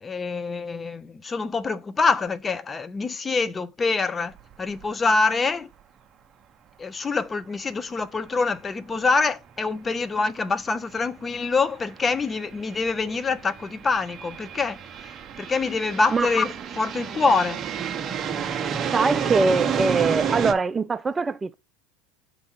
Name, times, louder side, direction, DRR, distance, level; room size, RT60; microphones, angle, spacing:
voice 1, 0.0-5.7 6.8-14.8 15.4-17.6, left 4 dB, 25° left, 0.6 m, -25 dB
sound 1, 4.4-4.5 4.8-4.9 9.0-9.1 10.1-10.3 11.0-20.5, right 7 dB, 35° right, 0.8 m, -30 dB
voice 2, 18.9-21.5, right 4 dB, 20° right, 0.4 m, -23 dB
6.9 x 3.6 x 4.4 m
hypercardioid pair, 80°, 0 cm